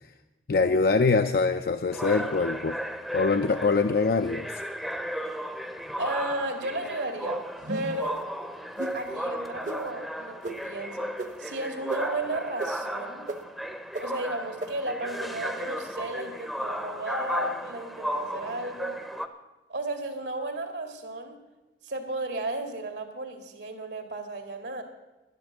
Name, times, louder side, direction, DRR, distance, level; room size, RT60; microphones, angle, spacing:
voice 1, 0.5-2.8 3.1-4.6, left 4 dB, 55° left, 8 dB, 0.4 m, -24 dB
sound 1, 1.9-19.3, equal, ahead, 0.7 m, -35 dB
voice 2, 6.0-7.4 7.7-8.2 8.9-11.1 11.4-13.3 14.0-19.0 19.7-21.4 21.8-24.8, right 2 dB, 80° right, 4 dB, 2.1 m, -34 dB
sound 2, 7.6-8.1 8.8-9.0 9.6-9.8 10.4-10.6 11.2-11.3 11.9-12.0 12.6-12.7 13.3-13.4 13.9-14.0 14.6-14.7, right 2 dB, 45° right, 0.9 m, -33 dB
11.5 x 10.5 x 7.3 m, 1.1 s
head